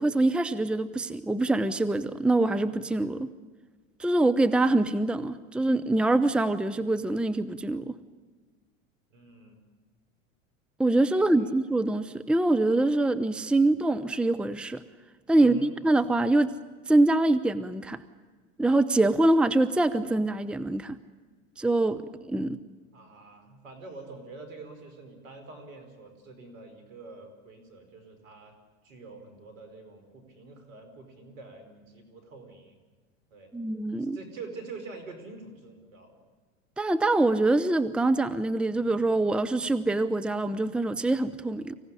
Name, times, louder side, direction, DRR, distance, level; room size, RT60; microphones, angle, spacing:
voice 1, 0.0-3.3 4.0-8.0 10.8-14.8 15.3-16.5 16.9-18.0 18.6-21.0 21.6-22.0 22.3-22.6 33.5-34.2 36.8-41.8, right 2 dB, 5° right, 10 dB, 0.8 m, -24 dB
voice 2, 9.1-9.6 11.1-11.5 15.4-15.7 22.9-28.5 28.8-32.7 33.3-33.5 34.1-36.2, right 3 dB, 75° right, 7 dB, 5.1 m, -46 dB
24.5 x 16.5 x 10.0 m, 1.4 s
hypercardioid pair, 90°, 40 cm